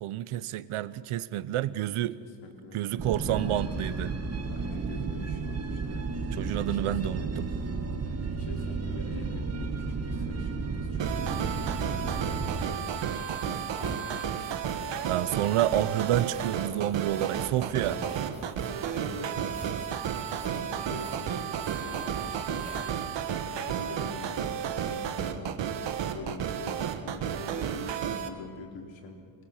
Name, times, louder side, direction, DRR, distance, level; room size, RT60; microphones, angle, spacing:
voice 1, 0.0-2.2 2.7-4.1 6.3-7.5 15.0-18.0, right 13 dB, 90° right, 0.9 m, -29 dB
voice 2, 2.2-2.8 3.2-3.7 4.5-7.4 8.3-14.5 17.7-18.2 18.9-22.7 23.6-25.6 26.1-29.2, left 4 dB, 65° left, 4.0 m, -45 dB
sound 1, 3.0-12.7, right 4 dB, 30° right, 1.5 m, -33 dB
sound 2, 11.0-28.3, right 8 dB, 60° right, 1.5 m, -32 dB
sound 3, 13.2-23.4, right 2 dB, 15° right, 1.0 m, -47 dB
24.5 x 21.5 x 7.4 m
cardioid pair, 140°, 49 cm